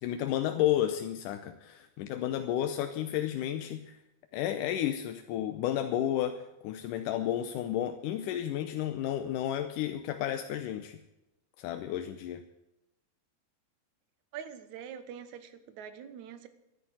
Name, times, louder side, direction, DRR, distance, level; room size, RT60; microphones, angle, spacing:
voice 1, 0.0-4.0 4.3-11.0 11.6-12.4, left 11 dB, 75° left, 8 dB, 2.1 m, -32 dB
voice 2, 14.3-16.5, right 8 dB, 65° right, 11 dB, 2.3 m, -44 dB
13.5 x 11.0 x 7.9 m, 0.95 s
omnidirectional pair, 4.2 m